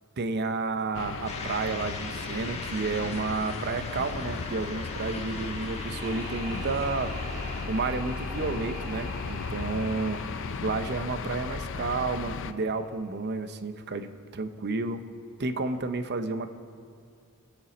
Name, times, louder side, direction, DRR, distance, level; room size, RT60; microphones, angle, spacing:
voice 1, 0.2-7.1 7.7-10.2 10.6-15.0 15.4-16.5, right 3 dB, 50° right, 9 dB, 0.7 m, -31 dB
sound 1, 0.9-12.5, left 5 dB, 60° left, 0.5 m, -36 dB
sound 2, 1.2-7.6, left 2 dB, 30° left, 1.5 m, -40 dB
sound 3, 5.7-12.6, right 1 dB, 75° right, 2.3 m, -44 dB
21.5 x 7.7 x 4.2 m, 2.2 s
head